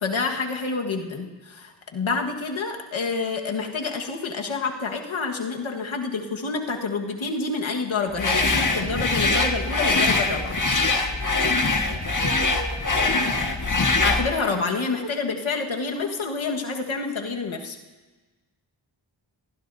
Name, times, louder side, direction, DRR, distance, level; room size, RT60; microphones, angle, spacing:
voice 1, 0.0-10.6 13.8-17.8, left 4 dB, 90° left, 2 dB, 1.7 m, -28 dB
sound 1, 8.2-14.3, left 3 dB, 40° left, 1.8 m, -23 dB
voice 2, 12.2-13.5 15.0-15.1, right 2 dB, 50° right, 1 dB, 4.6 m, -36 dB
22.5 x 16.0 x 2.7 m, 1.2 s
cardioid pair, 45°, 46 cm